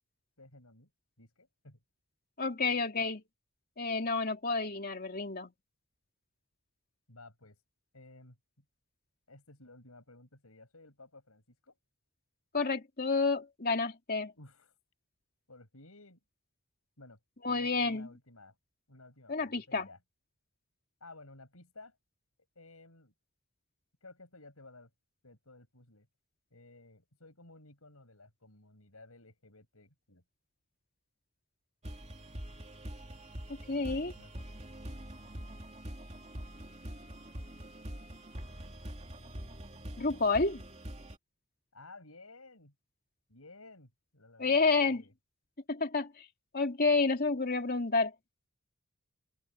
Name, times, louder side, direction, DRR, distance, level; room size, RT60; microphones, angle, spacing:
voice 1, 0.4-0.9 1.2-1.8 7.1-7.6 7.9-8.4 9.3-11.8 14.4-14.7 15.5-16.2 17.0-17.2 17.5-18.6 18.9-20.0 21.0-22.0 22.6-23.1 24.0-24.9 25.2-26.1 26.5-30.2 33.7-34.5 41.7-42.7 43.3-45.1, left 2 dB, 80° left, 7.4 m, -55 dB
voice 2, 2.4-3.2 3.8-5.5 12.5-14.3 17.4-18.1 19.3-19.9 33.7-34.1 40.0-40.6 44.4-45.0 45.7-46.2 46.5-48.1, left 3 dB, 45° left, 2.7 m, -30 dB
sound 1, 31.8-41.2, equal, 30° right, 2.6 m, -44 dB
open air
head